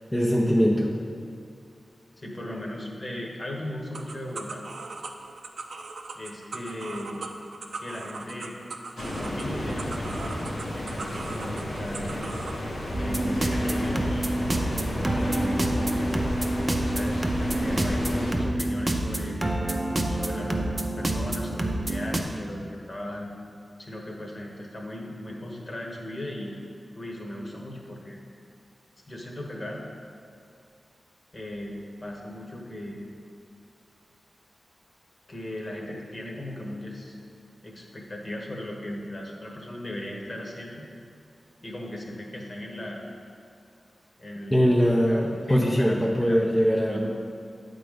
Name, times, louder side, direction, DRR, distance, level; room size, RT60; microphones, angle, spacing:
voice 1, 0.1-1.0 44.5-47.1, equal, 10° left, -3 dB, 0.6 m, -22 dB
voice 2, 2.2-4.7 6.1-7.2 7.8-8.6 9.0-10.1 10.7-12.4 13.0-16.1 16.7-19.4 20.1-23.3 23.8-26.5 26.9-28.2 29.1-29.8 31.3-33.0 35.3-37.2 37.6-40.9 41.6-43.1 44.2-45.2 45.5-46.4 46.7-47.1, left 1 dB, 45° left, -1 dB, 1.2 m, -37 dB
sound 1, 3.9-12.6, right 3 dB, 80° right, 0.5 m, -39 dB
sound 2, 9.0-18.3, left 1 dB, 85° left, 1.4 m, -33 dB
sound 3, 12.9-22.2, right 1 dB, 30° right, 0.6 m, -27 dB
8.9 x 3.9 x 5.0 m, 2.3 s
wide cardioid pair, 75°, 0 cm